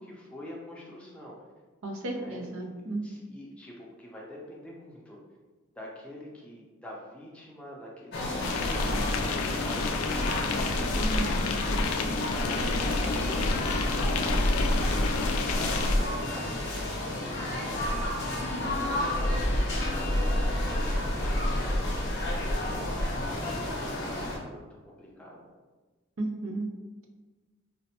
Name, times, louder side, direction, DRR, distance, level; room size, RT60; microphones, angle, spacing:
voice 1, 0.0-1.4 2.1-2.5 2.8-5.2 5.7-10.5 11.0-11.3 11.7-15.0 15.5-19.6 19.9-22.2 22.7-25.6, equal, 5° left, -4 dB, 0.5 m, -45 dB
voice 2, 1.8-3.1 11.0-11.3 26.2-26.7, right 2 dB, 75° right, 1 dB, 0.5 m, -33 dB
sound 1, 8.1-24.4, left 1 dB, 50° left, 0.7 m, -29 dB
sound 2, 8.4-16.0, left 5 dB, 85° left, 0.3 m, -32 dB
4.2 x 2.0 x 2.8 m, 1.2 s
head